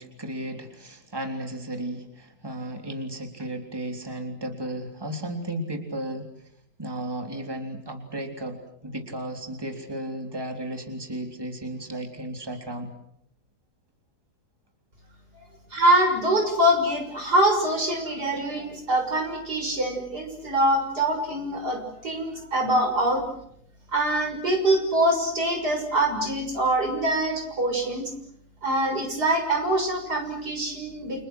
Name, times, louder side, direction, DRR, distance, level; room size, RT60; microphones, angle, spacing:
voice 1, 0.0-6.3 6.8-12.9, right 1 dB, 15° right, 4 dB, 3.6 m, -34 dB
voice 2, 15.7-23.2 23.9-28.1 28.6-31.3, right 1 dB, 75° right, 4 dB, 7.1 m, -24 dB
29.5 x 28.5 x 6.3 m, 0.73 s
omnidirectional pair, 1.7 m